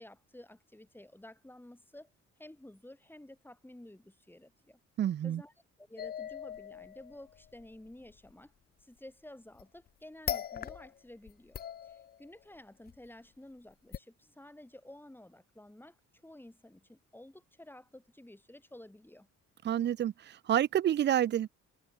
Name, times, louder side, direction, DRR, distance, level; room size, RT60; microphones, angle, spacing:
voice 1, 0.0-2.1 2.4-4.8 5.2-5.5 5.8-8.5 8.8-11.6 11.8-19.3, left 1 dB, 5° left, 3.2 m, -52 dB
voice 2, 5.0-5.4 19.6-21.5, right 11 dB, 35° right, 0.4 m, -29 dB
sound 1, 6.0-8.3 9.6-9.9 10.3-11.0 11.3-12.4 12.9-13.0 13.9-14.0, left 9 dB, 35° left, 0.4 m, -40 dB
open air
cardioid pair, 90°, 30 cm